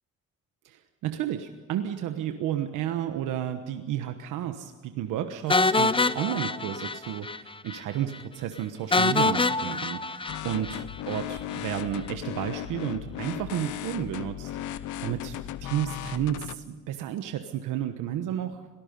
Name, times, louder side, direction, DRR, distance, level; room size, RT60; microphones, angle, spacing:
voice 1, 0.6-18.6, right 11 dB, 90° right, 7 dB, 1.2 m, -32 dB
sound 1, 5.5-7.4 7.7-7.8 8.1-8.2 8.9-11.2, left 3 dB, 15° left, 0.7 m, -25 dB
sound 2, 10.3-16.6, left 12 dB, 80° left, 0.8 m, -36 dB
26.0 x 18.5 x 5.4 m, 1.4 s
cardioid pair, 90°, 30 cm